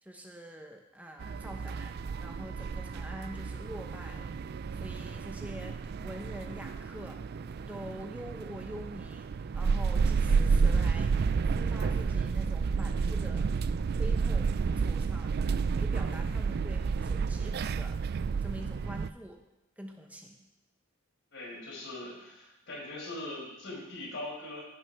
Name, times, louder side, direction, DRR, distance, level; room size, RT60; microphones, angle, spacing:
voice 1, 0.0-4.3 4.7-7.2 7.7-9.3 9.5-11.2 11.4-13.5 14.0-15.4 15.8-18.0 18.4-19.4 19.8-20.5, equal, 10° right, 2 dB, 0.9 m, -45 dB
sound 1, 1.2-19.1, right 5 dB, 50° right, 0.3 m, -30 dB
voice 2, 21.3-24.7, left 2 dB, 65° left, -3 dB, 5.0 m, -41 dB
16.0 x 6.4 x 5.8 m, 0.92 s
head